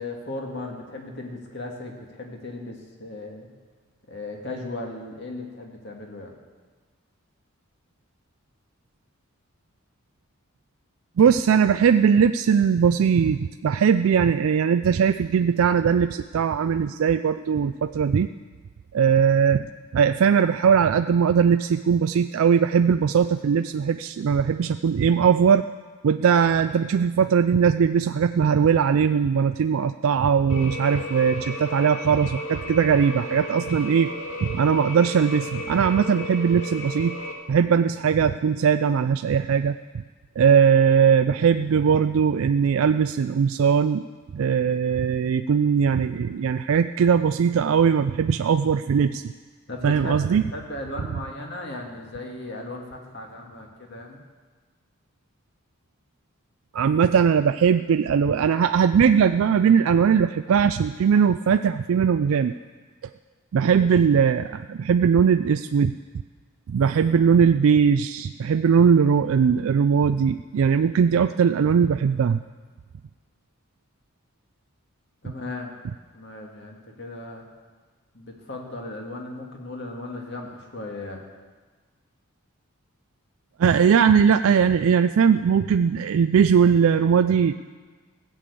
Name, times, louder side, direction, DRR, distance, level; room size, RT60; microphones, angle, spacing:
voice 1, 0.0-3.5 4.1-6.3 49.7-50.2 50.5-54.2 63.6-63.9 75.2-75.7 76.1-77.4 78.1-81.3, left 2 dB, 50° left, 1 dB, 2.0 m, -36 dB
voice 2, 11.2-18.3 18.9-19.6 19.9-25.6 26.0-34.1 34.4-37.1 37.5-40.0 40.4-44.0 44.3-49.2 49.8-50.4 56.7-62.5 63.5-65.9 66.7-72.4 83.6-87.5, right 7 dB, 70° right, 10 dB, 0.3 m, -20 dB
sound 1, 30.5-37.3, left 1 dB, 75° left, 1.8 m, -34 dB
16.0 x 7.0 x 8.4 m, 1.4 s
head